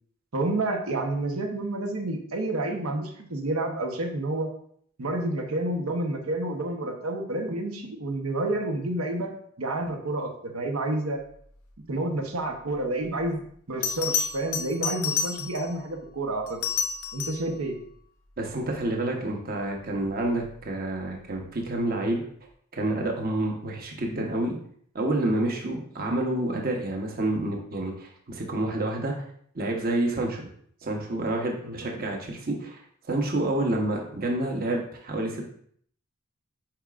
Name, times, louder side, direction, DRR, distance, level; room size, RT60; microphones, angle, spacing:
voice 1, 0.3-4.5 5.0-9.3 9.6-11.2 11.9-13.4 13.7-16.6 17.1-17.8 31.6-31.9, right 2 dB, 80° right, 2 dB, 1.0 m, -29 dB
Bell, 13.2-13.3 13.8-15.8 16.5-17.5 20.2-20.5, left 6 dB, 90° left, 0.8 m, -30 dB
voice 2, 18.4-22.2 22.7-24.5 24.9-29.1 29.5-30.5 30.8-32.8 33.1-35.4, right 1 dB, 45° right, 1 dB, 1.1 m, -28 dB
8.9 x 4.9 x 2.5 m, 0.62 s
head